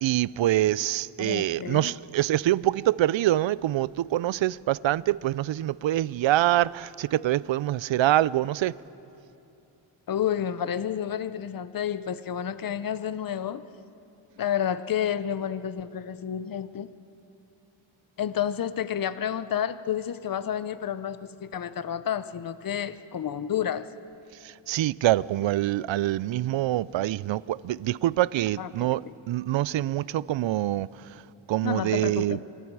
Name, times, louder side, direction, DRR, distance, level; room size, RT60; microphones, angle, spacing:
voice 1, 0.0-8.7 24.4-29.0 29.3-30.9 31.5-32.4, right 14 dB, 65° right, 0.5 m, -25 dB
voice 2, 1.2-1.9 10.1-13.6 14.4-16.9 18.2-23.8 28.6-29.1 31.6-32.4, left 9 dB, 45° left, 0.7 m, -30 dB
26.5 x 22.0 x 4.7 m
wide cardioid pair, 100°, 49 cm